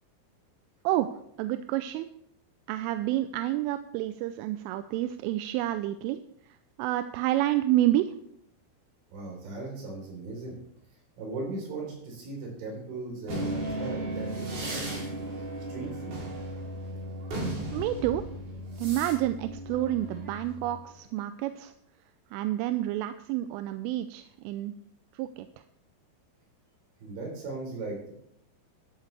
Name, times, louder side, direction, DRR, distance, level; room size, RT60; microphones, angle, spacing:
voice 1, 1.4-2.1 2.7-6.2 6.8-8.1 17.7-18.3 18.8-21.7 22.3-24.7 25.2-25.5, right 14 dB, 85° right, 10 dB, 3.0 m, -29 dB
voice 2, 9.1-10.6 11.2-15.1 15.7-16.2 27.0-28.1, right 3 dB, 65° right, -1 dB, 6.3 m, -38 dB
sound 1, 13.3-20.8, right 1 dB, 50° right, 5.1 m, -35 dB
13.5 x 12.0 x 3.4 m, 0.72 s
omnidirectional pair, 5.9 m